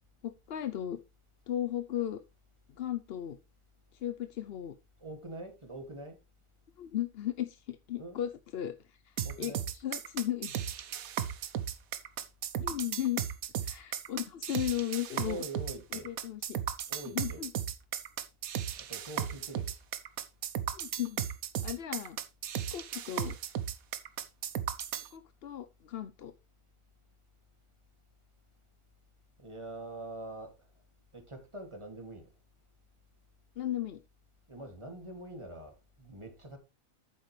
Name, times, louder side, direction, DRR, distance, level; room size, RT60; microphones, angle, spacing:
voice 1, 0.2-1.0 1.5-2.2 2.8-3.4 3.9-4.7 6.8-10.5 12.6-13.2 13.6-15.4 16.0-16.6 17.1-17.5 20.7-21.2 21.6-22.2 22.6-23.4 25.1-26.3 33.6-34.0, left 11 dB, 55° left, 0.8 m, -36 dB
voice 2, 5.0-6.2 8.0-8.2 9.2-9.7 15.2-16.1 16.9-17.4 18.8-19.8 29.4-30.5 31.1-32.3 34.5-36.6, right 2 dB, 20° right, 2.4 m, -44 dB
sound 1, 9.2-25.1, right 9 dB, 85° right, 1.3 m, -36 dB
10.5 x 8.9 x 3.2 m
omnidirectional pair, 1.4 m